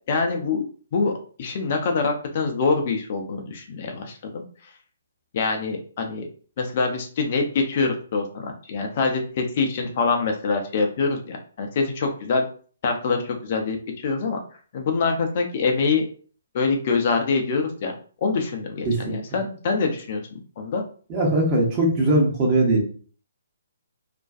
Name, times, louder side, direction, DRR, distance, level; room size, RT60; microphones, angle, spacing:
voice 1, 0.1-1.1 1.4-4.4 5.3-6.3 6.6-12.5 12.8-14.4 14.7-16.0 16.5-17.9 18.2-20.8, left 4 dB, 45° left, 3 dB, 0.5 m, -25 dB
voice 2, 18.8-19.2 21.1-22.8, right 1 dB, 25° right, -2 dB, 0.9 m, -20 dB
2.5 x 2.2 x 2.4 m, 0.42 s
figure-of-eight pair, 135°, 0 cm